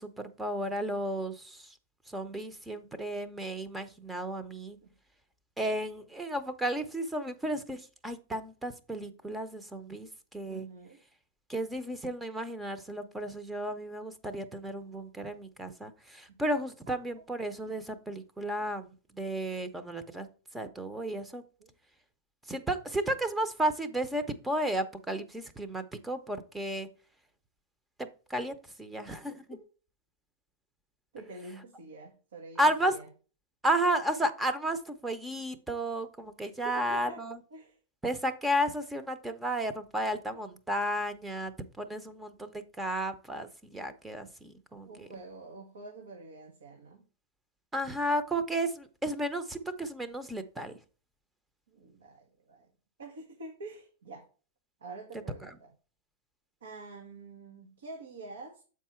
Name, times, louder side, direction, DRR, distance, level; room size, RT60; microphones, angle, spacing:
voice 1, 0.0-1.7 2.1-4.8 5.6-10.7 11.5-20.3 20.5-21.4 22.5-26.9 28.0-29.4 32.6-32.9 33.6-37.4 38.0-44.9 47.7-50.7, right 1 dB, 10° right, 10 dB, 0.7 m, -33 dB
voice 2, 10.5-11.0 17.2-17.3 21.6-21.7 31.1-33.1 36.4-37.2 37.5-37.8 44.8-47.0 51.7-52.7 53.0-54.3 54.8-55.7 56.6-58.6, right 2 dB, 90° right, 1 dB, 1.5 m, -47 dB
7.3 x 4.7 x 4.4 m, 0.36 s
hypercardioid pair, 135°, 0 cm